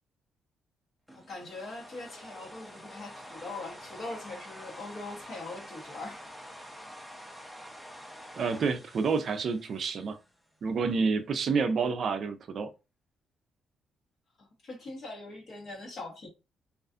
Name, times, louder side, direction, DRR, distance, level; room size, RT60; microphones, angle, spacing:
voice 1, 1.1-6.2 14.4-16.3, left 2 dB, 55° left, 1.0 m, -42 dB
sound 1, 1.1-10.3, equal, 5° left, 0.5 m, -47 dB
voice 2, 8.4-10.2 10.6-12.7, right 5 dB, 55° right, 0.4 m, -29 dB
2.4 x 2.3 x 2.4 m
cardioid pair, 90°, 0 cm